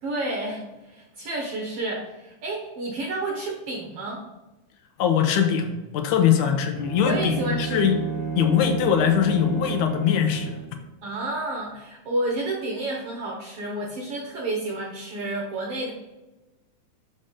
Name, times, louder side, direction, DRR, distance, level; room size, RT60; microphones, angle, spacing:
voice 1, 0.0-4.2 6.4-6.5 7.0-7.9 11.0-15.9, right 2 dB, 65° right, -1 dB, 1.5 m, -30 dB
voice 2, 5.0-8.0 8.4-10.6, left 8 dB, 75° left, 6 dB, 2.2 m, -22 dB
Bowed string instrument, 6.8-10.8, right 4 dB, 85° right, 0.7 m, -31 dB
6.8 x 5.4 x 3.7 m, 1.1 s
omnidirectional pair, 3.6 m